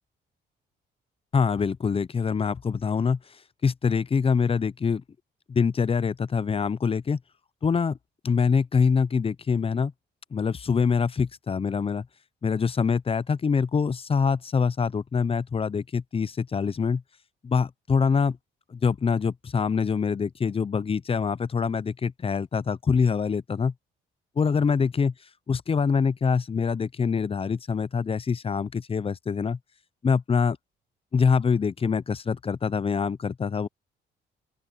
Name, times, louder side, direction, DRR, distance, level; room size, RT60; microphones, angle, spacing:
voice 1, 1.3-3.2 3.6-5.0 5.5-7.2 7.6-8.0 8.2-9.9 10.3-12.1 12.4-17.0 17.4-18.4 18.7-23.7 24.4-25.1 25.5-29.6 30.0-30.6 31.1-33.7, left 5 dB, 30° left, 0.6 m, -25 dB
open air
cardioid pair, 90°, 20 cm